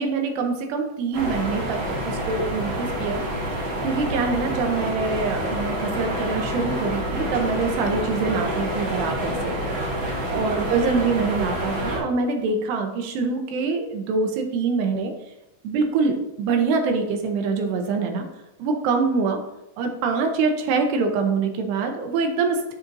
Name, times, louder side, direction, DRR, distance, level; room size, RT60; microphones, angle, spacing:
voice 1, 0.0-1.8 2.0-3.2 3.6-9.6 10.3-15.1 15.6-18.2 18.6-19.4 19.8-22.7, right 4 dB, 75° right, 4 dB, 2.7 m, -24 dB
sound 1, 1.1-12.0, equal, 60° right, 1.2 m, -27 dB
12.0 x 4.3 x 2.6 m, 0.90 s
omnidirectional pair, 5.2 m